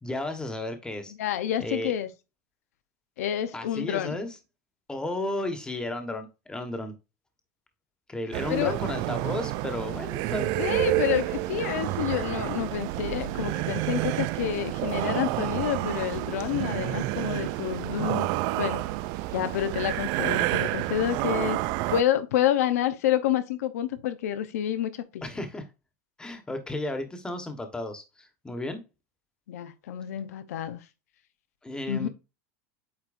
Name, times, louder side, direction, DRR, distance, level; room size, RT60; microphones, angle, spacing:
voice 1, 0.0-1.1 1.6-1.9 3.5-4.4 4.9-6.9 8.1-10.6 25.2-25.6 26.2-28.8 31.6-32.1, left 1 dB, 10° left, 1.3 m, -33 dB
voice 2, 1.2-2.1 3.2-4.2 8.5-8.7 10.6-18.3 18.6-18.8 19.3-21.6 21.9-25.2 29.5-30.8 31.9-32.1, left 11 dB, 90° left, 0.8 m, -28 dB
sound 1, 8.3-22.0, right 16 dB, 55° right, 0.4 m, -29 dB
8.5 x 4.3 x 2.6 m
supercardioid pair, 125°, 8 cm